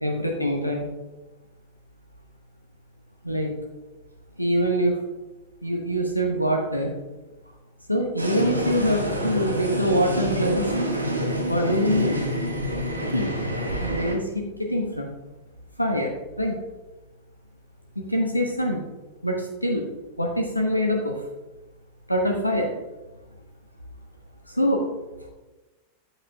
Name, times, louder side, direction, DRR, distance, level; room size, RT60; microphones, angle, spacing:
voice 1, 0.0-0.8 3.2-3.5 4.4-5.0 5.6-6.9 7.9-10.7 11.5-12.2 13.1-13.3 13.8-15.1 15.8-16.6 18.0-18.8 19.2-19.9 20.2-21.2 22.1-22.7 24.5-24.9, equal, 90° left, 1 dB, 0.9 m, -24 dB
sound 1, 8.2-14.1, equal, 80° right, 1.0 m, -27 dB
8.5 x 7.6 x 2.3 m, 1.1 s
figure-of-eight pair, 90°, 0 cm